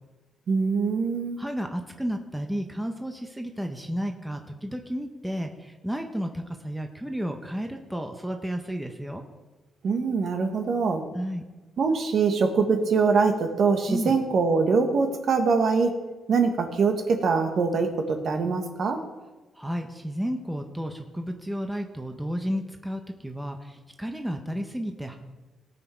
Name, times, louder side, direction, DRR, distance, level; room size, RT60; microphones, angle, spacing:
voice 1, 0.5-1.4 9.8-11.0 11.8-15.9 16.3-19.0, right 4 dB, 50° right, 4 dB, 1.5 m, -23 dB
voice 2, 1.4-9.2 11.1-11.4 13.9-14.2 19.5-25.2, equal, 5° right, 4 dB, 0.8 m, -32 dB
18.5 x 6.2 x 4.5 m, 1.2 s
cardioid pair, 135°, 0 cm